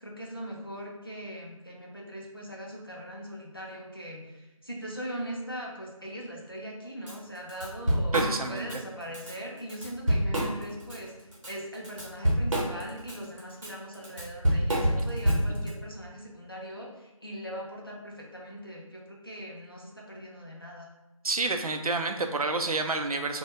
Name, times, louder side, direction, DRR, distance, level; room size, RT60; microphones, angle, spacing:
voice 1, 0.0-11.1 11.5-20.9, equal, 40° left, -2 dB, 0.4 m, -40 dB
Drum kit / Drum, 7.1-7.2 7.5-8.8 9.1-9.3 9.7-11.0 11.3-15.7, equal, 60° right, 0.8 m, -27 dB
voice 2, 8.1-8.8 15.6-15.7 21.2-23.4, right 3 dB, 90° right, 5 dB, 0.4 m, -29 dB
2.1 x 2.1 x 2.9 m, 1.1 s
figure-of-eight pair, 180°, 18 cm